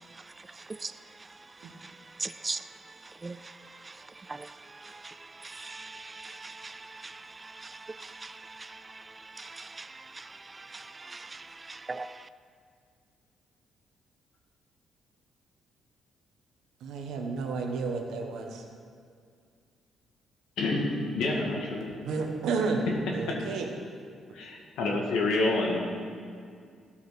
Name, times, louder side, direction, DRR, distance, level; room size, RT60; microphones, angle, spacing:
voice 1, 0.0-12.3, right 3 dB, 25° right, 0.3 m, -42 dB
voice 2, 16.8-18.6 22.0-22.8 23.1-23.7, right 4 dB, 80° right, 1.4 m, -31 dB
voice 3, 20.6-22.0 23.3-23.4 24.3-25.8, left 2 dB, 85° left, 2.0 m, -28 dB
13.5 x 6.2 x 6.0 m
cardioid pair, 90°, 0 cm